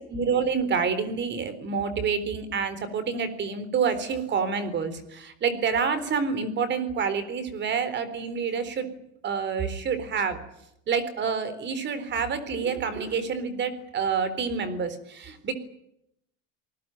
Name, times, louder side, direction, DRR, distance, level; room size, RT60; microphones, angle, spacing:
voice 1, 0.1-9.0 9.2-10.4 10.9-15.5, right 6 dB, 30° right, 14 dB, 3.9 m, -28 dB
27.5 x 20.0 x 9.1 m, 0.79 s
cardioid pair, 170°, 39 cm